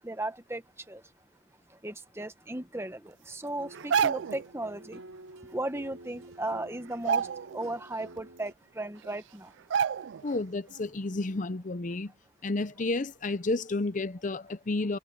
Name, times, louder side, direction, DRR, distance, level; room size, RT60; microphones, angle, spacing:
voice 1, 0.0-0.6 0.9-1.0 1.8-5.0 5.5-7.3 7.5-9.5, right 1 dB, 10° right, 1.1 m, -36 dB
sound 1, 3.6-8.5, right 2 dB, 85° right, 4.6 m, -50 dB
sound 2, 3.7-4.5 5.9-6.0 6.3-6.6 6.9-7.8 8.2-8.3 9.0-9.1 9.7-10.3 10.7-10.9, right 7 dB, 65° right, 0.3 m, -29 dB
voice 2, 10.2-12.1 12.4-15.0, left 2 dB, 40° left, 0.6 m, -31 dB
head